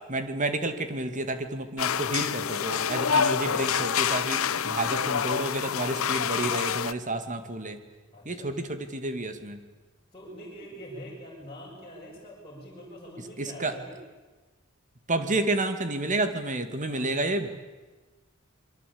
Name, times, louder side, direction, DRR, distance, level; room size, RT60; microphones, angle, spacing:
voice 1, 0.1-7.8 8.3-9.6 13.4-13.7 15.1-17.5, right 2 dB, 40° right, 8 dB, 2.3 m, -30 dB
sound 1, 1.8-6.9, left 7 dB, 80° left, 0.8 m, -27 dB
voice 2, 8.1-8.5 10.1-14.0 16.9-17.1, equal, 25° left, -5 dB, 7.0 m, -44 dB
27.5 x 23.0 x 8.7 m, 1.2 s
head